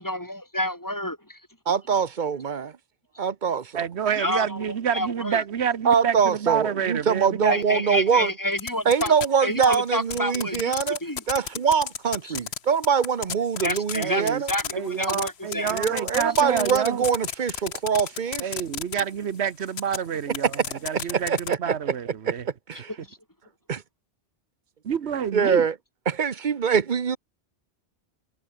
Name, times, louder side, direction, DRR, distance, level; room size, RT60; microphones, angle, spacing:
voice 1, 0.0-1.4 4.2-5.4 7.5-9.1 9.4-11.2 12.2-12.4 13.6-15.7 23.0-23.2, left 1 dB, 15° left, 4.0 m, -29 dB
voice 2, 1.7-2.7 3.2-3.7 5.8-8.3 8.9-11.0 11.3-14.5 15.7-18.5 21.1-21.7 22.3-22.4 22.7-22.9 25.3-25.7 26.1-27.2, right 6 dB, 50° right, 0.9 m, -23 dB
voice 3, 3.7-7.6 14.0-14.4 14.7-17.1 18.4-22.5 24.8-25.7, right 8 dB, 80° right, 1.3 m, -28 dB
sound 1, 8.6-9.3 9.6-12.6 12.8-19.0 19.7-20.0 20.3-21.5, left 7 dB, 75° left, 1.3 m, -31 dB
omnidirectional pair, 1.1 m